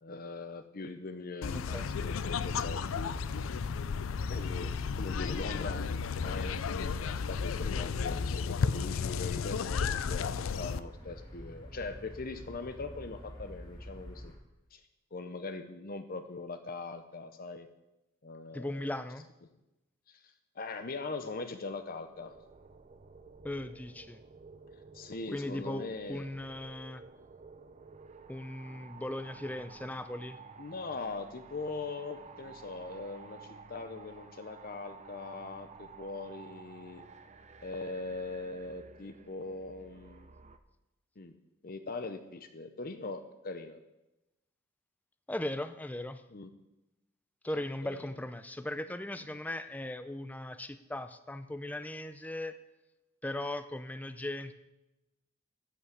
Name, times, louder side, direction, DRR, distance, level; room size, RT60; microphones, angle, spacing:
voice 1, 0.0-3.1 4.3-5.8 6.2-6.6 7.0-14.3 14.7-14.8 15.1-17.7 18.2-18.9 20.1-22.4 24.9-26.3 30.6-37.0 37.6-40.3 41.2-41.3 41.6-43.8 46.3-46.5 47.8-48.0 49.2-49.3, left 3 dB, 45° left, 8 dB, 0.7 m, -41 dB
sound 1, 1.4-10.8, left 6 dB, 85° left, 0.4 m, -33 dB
voice 2, 1.5-1.9 18.5-19.3 23.4-24.2 25.3-27.0 28.3-30.4 45.3-46.2 47.4-52.6 53.2-54.5, left 1 dB, 10° left, 10 dB, 0.5 m, -38 dB
sound 2, 1.8-14.3, equal, 25° left, 2.3 m, -47 dB
sound 3, 21.7-40.6, right 4 dB, 35° right, 0.6 m, -53 dB
12.5 x 5.7 x 7.9 m, 0.97 s
head